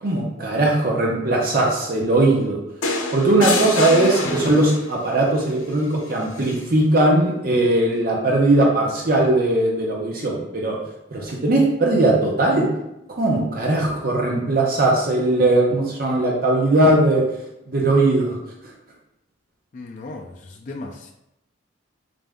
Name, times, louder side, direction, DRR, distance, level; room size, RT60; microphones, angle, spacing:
voice 1, 0.0-2.6 3.1-10.8 11.1-12.6 13.2-17.2 17.7-18.4, right 2 dB, 50° right, -2 dB, 0.7 m, -19 dB
sound 1, 2.8-5.0 6.4-6.6, left 3 dB, 90° left, 0.6 m, -26 dB
voice 2, 19.7-21.1, left 2 dB, 40° left, 0 dB, 0.3 m, -36 dB
4.1 x 2.5 x 3.4 m, 0.86 s
head